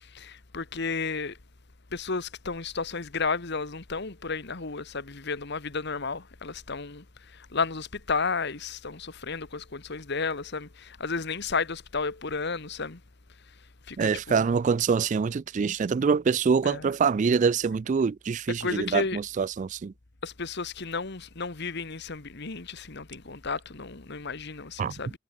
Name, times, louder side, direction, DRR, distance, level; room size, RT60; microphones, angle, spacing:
voice 1, 0.1-1.4 1.9-7.0 7.5-13.0 13.9-14.4 16.6-16.9 18.6-19.2 20.2-25.1, left 4 dB, 55° left, 1.5 m, -32 dB
voice 2, 14.0-19.9 24.8-24.9, right 5 dB, 35° right, 0.3 m, -25 dB
head